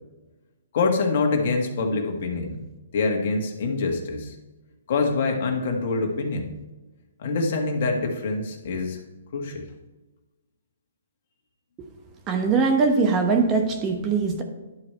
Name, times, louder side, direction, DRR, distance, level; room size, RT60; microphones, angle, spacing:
voice 1, 0.7-2.6 2.9-4.3 4.9-6.5 7.2-9.0 9.3-9.7, left 3 dB, 50° left, 3 dB, 1.6 m, -25 dB
voice 2, 12.3-14.4, right 4 dB, 25° right, 4 dB, 1.0 m, -21 dB
11.0 x 4.8 x 4.4 m, 1.1 s
hypercardioid pair, 140°, 0 cm